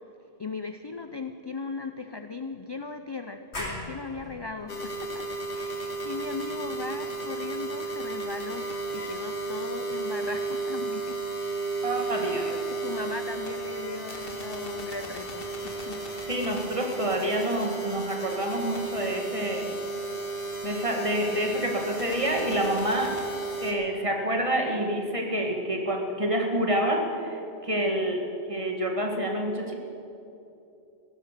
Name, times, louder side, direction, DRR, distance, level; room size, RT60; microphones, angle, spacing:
voice 1, 0.4-5.3 5.5-11.2 12.0-16.0 27.9-28.2, left 4 dB, 40° left, 8 dB, 0.4 m, -38 dB
sound 1, 3.5-8.9, left 1 dB, 75° left, 2.9 m, -43 dB
sound 2, 4.7-23.7, right 3 dB, 55° left, 1.8 m, -33 dB
voice 2, 11.8-12.5 16.3-19.7 20.6-23.1 23.6-29.7, right 1 dB, 30° right, 1 dB, 1.8 m, -28 dB
16.5 x 11.0 x 6.7 m, 2.9 s
omnidirectional pair, 1.2 m